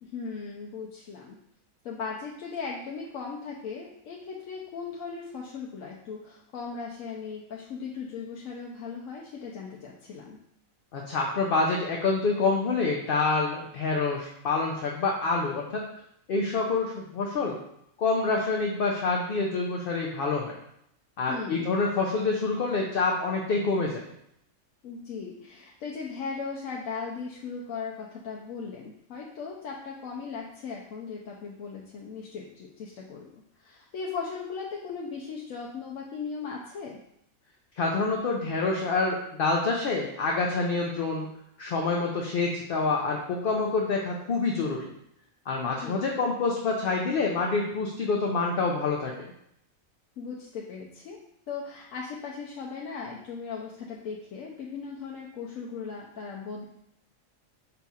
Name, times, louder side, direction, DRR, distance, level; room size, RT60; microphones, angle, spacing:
voice 1, 0.0-1.4 1.8-10.4 21.3-21.7 24.8-33.3 33.6-37.0 45.6-46.0 50.2-51.2 51.5-56.6, left 5 dB, 75° left, -2 dB, 1.0 m, -38 dB
voice 2, 10.9-15.9 16.3-17.6 18.0-20.6 21.2-24.0 37.8-41.3 41.6-44.9 45.5-49.1, left 3 dB, 55° left, -1 dB, 0.6 m, -27 dB
5.5 x 2.4 x 4.0 m, 0.76 s
omnidirectional pair, 1.4 m